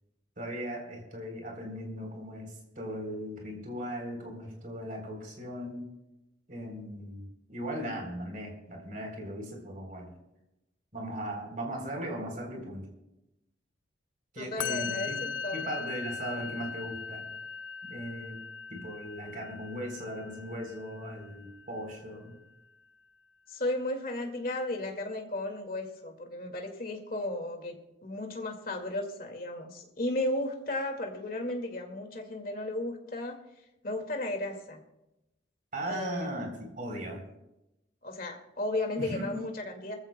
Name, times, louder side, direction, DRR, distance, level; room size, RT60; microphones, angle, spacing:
voice 1, 0.4-5.9 6.5-10.1 10.9-12.9 14.3-15.2 15.5-17.3 17.8-18.4 18.7-22.3 35.7-37.2 39.0-39.4, equal, 45° right, 1 dB, 3.6 m, -38 dB
voice 2, 14.4-15.6 23.5-33.4 33.8-34.8 35.8-36.6 38.0-40.0, left 1 dB, 45° left, 3 dB, 2.1 m, -34 dB
Musical instrument, 14.6-21.9, left 5 dB, 70° left, 0.4 m, -39 dB
23.5 x 14.5 x 2.2 m, 0.93 s
head